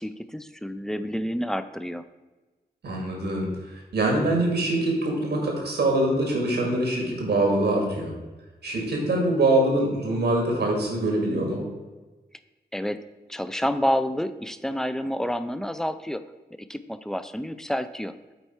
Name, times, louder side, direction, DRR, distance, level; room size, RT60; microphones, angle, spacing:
voice 1, 0.0-2.0 12.7-13.0 13.3-16.2 16.7-18.1, equal, 5° left, 11 dB, 0.4 m, -29 dB
voice 2, 2.8-8.1 8.6-11.7, right 1 dB, 85° right, 0 dB, 1.9 m, -24 dB
8.1 x 4.4 x 4.4 m, 1.2 s
cardioid pair, 60°, 17 cm